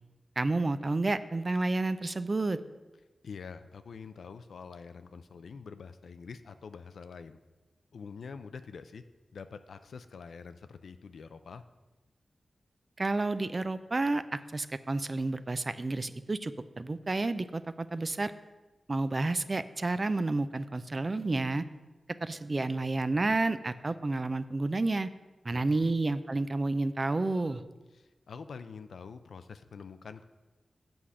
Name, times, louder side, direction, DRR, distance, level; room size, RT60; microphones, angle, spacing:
voice 1, 0.4-2.6 13.0-18.3 18.9-21.7 22.2-25.1 25.4-27.6, right 2 dB, 35° right, 12 dB, 0.4 m, -30 dB
voice 2, 3.2-7.4 7.9-9.0 9.3-11.6 25.5-26.0 27.9-30.2, left 5 dB, 90° left, 10 dB, 0.4 m, -46 dB
7.8 x 4.9 x 7.0 m, 1.2 s
wide cardioid pair, 90°, 0 cm